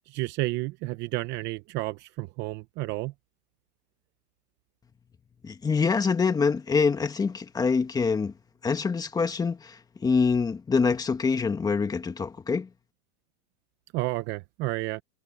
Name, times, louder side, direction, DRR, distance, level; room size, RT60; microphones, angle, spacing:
voice 1, 0.1-3.1 13.9-15.0, right 20 dB, 30° right, 0.7 m, -31 dB
voice 2, 5.4-8.3 8.6-12.7, left 5 dB, 10° left, 1.6 m, -25 dB
supercardioid pair, 155°, 36 cm